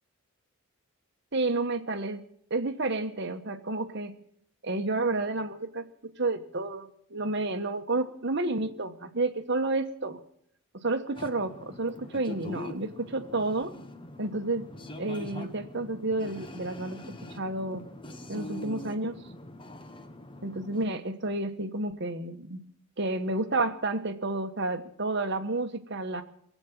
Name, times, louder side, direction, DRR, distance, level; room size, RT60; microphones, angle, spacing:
voice 1, 1.3-2.2 2.5-4.1 4.6-5.9 6.2-10.2 10.8-13.7 14.2-14.7 15.0-17.0 17.4-17.8 18.3-19.2 20.4-22.6 23.0-26.2, right 2 dB, 50° right, 6 dB, 1.2 m, -30 dB
sound 1, 11.2-20.9, left 1 dB, 20° left, 0.9 m, -43 dB
21.5 x 8.3 x 7.4 m, 0.68 s
head